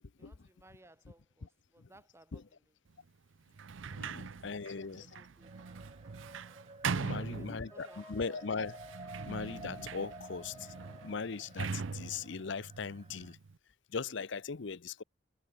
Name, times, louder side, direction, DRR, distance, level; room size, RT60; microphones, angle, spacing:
voice 1, 0.2-2.4 3.9-4.7 4.9-5.6 7.0-8.5 12.5-12.7, right 1 dB, 15° right, 2.4 m, -61 dB
Sliding door, 3.5-8.0 8.7-13.5, right 5 dB, 70° right, 0.6 m, -41 dB
voice 2, 3.9-5.2 6.8-8.8 9.3-13.4 13.9-15.0, left 5 dB, 65° left, 0.7 m, -39 dB
sound 1, 5.4-13.3, right 3 dB, 30° right, 2.2 m, -54 dB
Wind instrument woodwind instrument, 7.7-11.3, left 1 dB, 10° left, 0.4 m, -54 dB
head